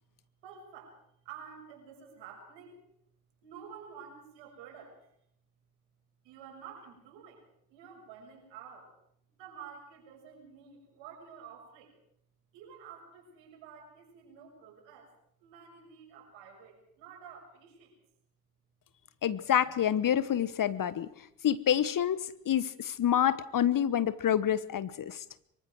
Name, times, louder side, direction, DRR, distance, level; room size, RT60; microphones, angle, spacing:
voice 1, 0.4-1.0 1.2-2.8 3.4-5.1 6.2-7.4 7.7-8.9 9.3-11.9 12.5-15.1 15.4-18.0, right 7 dB, 70° right, 1 dB, 6.6 m, -50 dB
voice 2, 19.2-21.1 21.4-22.2 22.5-25.2, left 10 dB, 45° left, 16 dB, 1.2 m, -27 dB
24.5 x 23.5 x 4.7 m, 0.71 s
figure-of-eight pair, 45°, 47 cm